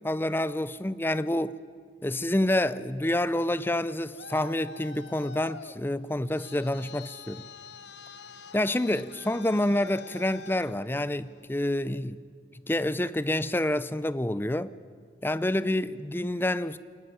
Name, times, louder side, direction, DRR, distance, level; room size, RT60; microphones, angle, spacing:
voice 1, 0.0-1.6 2.0-7.4 8.5-12.2 12.7-14.7 15.2-16.8, left 1 dB, 10° left, 0.5 m, -28 dB
Traffic noise roadway noise, 3.8-11.5, left 4 dB, 70° left, 1.0 m, -46 dB
23.0 x 18.0 x 9.7 m
head